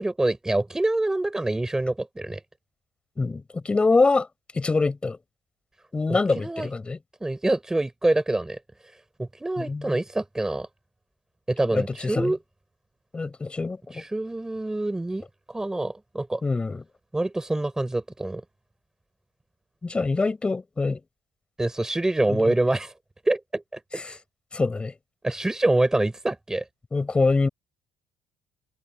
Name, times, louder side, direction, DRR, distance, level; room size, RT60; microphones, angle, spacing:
voice 1, 0.0-2.4 6.1-6.7 7.2-8.6 9.2-10.7 11.5-12.4 13.9-16.4 17.1-18.4 21.6-22.9 23.2-24.2 25.2-26.6, right 2 dB, 10° right, 4.7 m, -26 dB
voice 2, 3.2-4.3 4.5-5.2 5.9-7.0 9.6-10.0 11.7-12.3 13.1-14.0 16.4-16.8 19.8-21.0 22.3-22.5 24.0-24.1 24.5-24.9 26.9-27.5, left 3 dB, 15° left, 6.2 m, -24 dB
cardioid pair, 150°, 7 cm